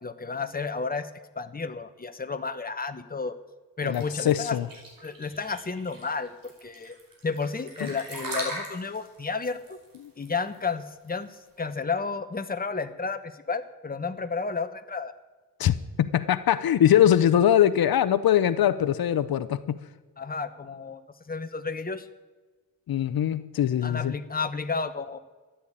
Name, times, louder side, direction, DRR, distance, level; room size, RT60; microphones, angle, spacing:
voice 1, 0.0-1.1 1.4-3.4 3.8-4.6 5.0-6.9 7.2-9.8 10.2-11.3 11.6-15.1 20.2-21.0 21.3-22.1 23.8-25.2, left 4 dB, 25° left, 8 dB, 1.1 m, -32 dB
voice 2, 3.8-4.7 7.8-7.9 10.0-10.1 15.6-19.8 22.9-24.1, left 10 dB, 80° left, 14 dB, 0.7 m, -22 dB
sound 1, 3.9-11.6, right 1 dB, 70° right, 5.4 m, -39 dB
14.0 x 10.0 x 8.9 m, 1.3 s
wide cardioid pair, 110°, 36 cm